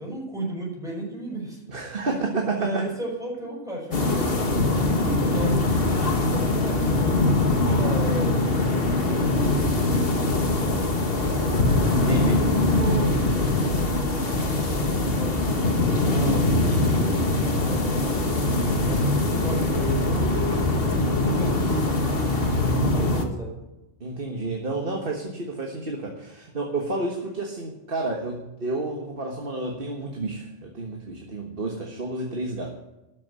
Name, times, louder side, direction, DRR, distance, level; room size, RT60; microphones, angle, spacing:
voice 1, 0.0-1.6 2.1-2.2 2.5-11.6 12.0-16.5 17.0-18.4 18.8-23.5, equal, 5° right, -4 dB, 5.8 m, -35 dB
voice 2, 1.7-2.8 11.9-12.4 24.0-32.7, right 2 dB, 45° right, 1 dB, 1.7 m, -30 dB
sound 1, 3.9-23.2, left 2 dB, 50° left, 1.9 m, -22 dB
13.0 x 7.3 x 8.3 m, 0.97 s
omnidirectional pair, 1.3 m